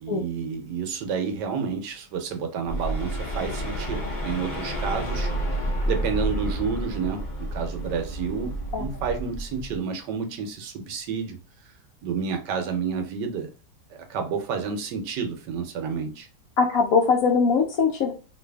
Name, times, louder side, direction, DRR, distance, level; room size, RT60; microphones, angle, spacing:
voice 1, 0.0-5.3 5.9-11.4 12.0-13.5 13.9-16.3, right 6 dB, 75° right, 1.3 m, -30 dB
sound 1, 2.7-9.8, right 1 dB, 50° left, 0.5 m, -30 dB
voice 2, 16.6-18.1, left 5 dB, 65° left, 1.0 m, -21 dB
3.0 x 2.6 x 3.3 m
omnidirectional pair, 1.9 m